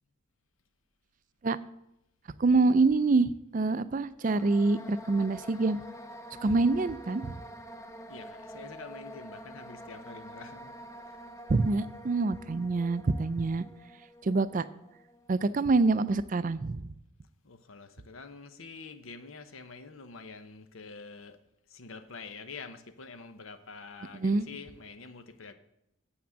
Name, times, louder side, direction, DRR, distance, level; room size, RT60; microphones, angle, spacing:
voice 1, 2.4-5.8 6.4-7.4 11.5-13.6 14.2-14.6 15.3-16.9 24.1-24.5, right 3 dB, 40° right, 0.4 m, -26 dB
sound 1, 4.2-16.1, equal, 15° left, 0.6 m, -47 dB
voice 2, 8.1-10.8 11.1-11.2 17.4-21.4 21.7-25.5, left 4 dB, 75° left, 0.9 m, -46 dB
8.0 x 6.0 x 7.4 m
head